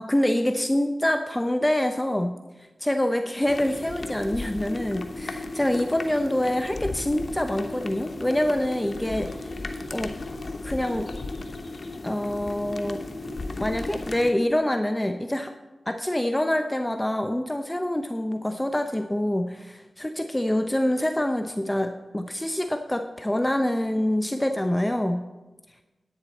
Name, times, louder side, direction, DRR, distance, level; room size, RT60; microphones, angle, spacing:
voice 1, 0.0-9.5 9.9-10.1 10.6-11.1 12.0-13.1 13.6-15.5 15.9-25.3, left 1 dB, 15° left, 7 dB, 0.6 m, -26 dB
sound 1, 3.4-14.3, left 2 dB, 55° left, 0.9 m, -35 dB
10.0 x 9.4 x 4.1 m, 1.2 s
cardioid pair, 40°, 0 cm